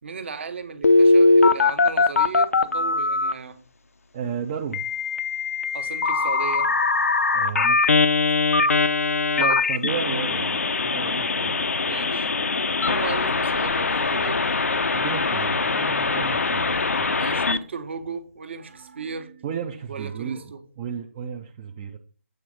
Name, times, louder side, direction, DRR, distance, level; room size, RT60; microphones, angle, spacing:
voice 1, 0.0-3.6 5.7-7.0 9.4-9.6 11.8-12.3 12.6-14.4 17.2-19.4 19.9-20.6, right 5 dB, 55° right, 1.1 m, -36 dB
Telephone, 0.8-3.3 4.7-17.6, left 3 dB, 90° left, 0.7 m, -21 dB
voice 2, 4.1-4.8 7.3-8.0 9.4-11.7 14.9-17.2 19.4-22.0, right 7 dB, 20° right, 0.4 m, -33 dB
7.8 x 4.2 x 5.0 m
hypercardioid pair, 165°, 8 cm